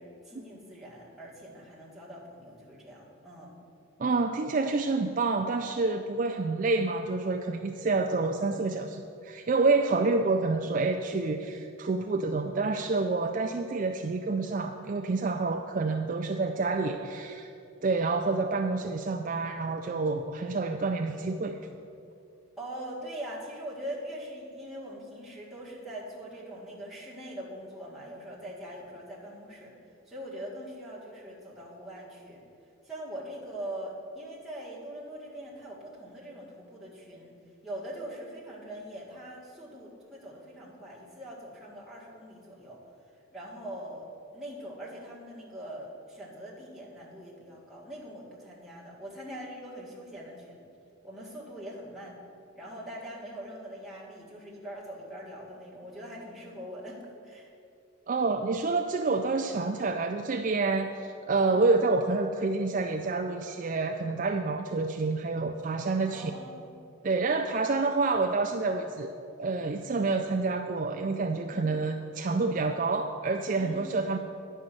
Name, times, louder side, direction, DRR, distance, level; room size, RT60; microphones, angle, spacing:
voice 1, 0.0-3.5 22.6-29.7 30.1-32.4 32.8-37.4 37.6-42.8 43.3-44.1 44.3-50.6 51.0-52.2 52.5-57.5 61.4-61.7 66.1-66.7 71.5-71.7 73.6-73.9, right 1 dB, ahead, -7 dB, 1.7 m, -42 dB
voice 2, 4.0-17.5 17.8-21.6 58.1-66.3 67.0-74.2, right 3 dB, 40° right, 5 dB, 0.3 m, -28 dB
10.0 x 5.5 x 7.7 m, 2.6 s
head